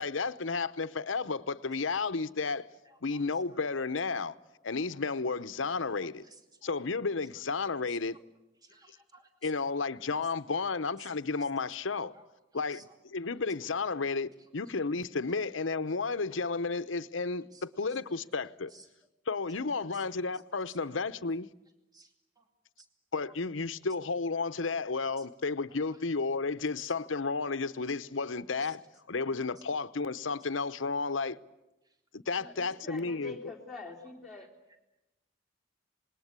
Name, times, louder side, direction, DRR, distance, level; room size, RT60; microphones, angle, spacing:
voice 1, 0.0-2.7 3.0-4.3 4.6-6.2 6.6-8.2 9.4-12.1 12.5-12.8 13.1-18.7 19.3-21.5 23.1-28.8 29.1-31.4 32.1-33.4, left 4 dB, 90° left, 0.9 m, -32 dB
voice 2, 2.8-3.6 6.2-6.8 7.3-7.4 8.1-8.2 8.6-9.6 11.0-11.1 11.4-11.5 12.1-12.9 13.3-13.4 13.8-14.7 17.5-18.3 18.7-18.9 19.9-20.1 20.3-20.4 20.7-20.8 21.9-22.5 22.8-22.9 23.2-23.3 25.2-25.3 25.9-26.0 26.8-27.2 28.6-28.8 29.6-29.8 31.8-32.0 33.8-33.9 34.4-34.8, right 3 dB, 20° right, 2.5 m, -59 dB
voice 3, 19.6-20.1 32.4-34.5, left 4 dB, ahead, 3.5 m, -46 dB
26.0 x 20.5 x 8.2 m
head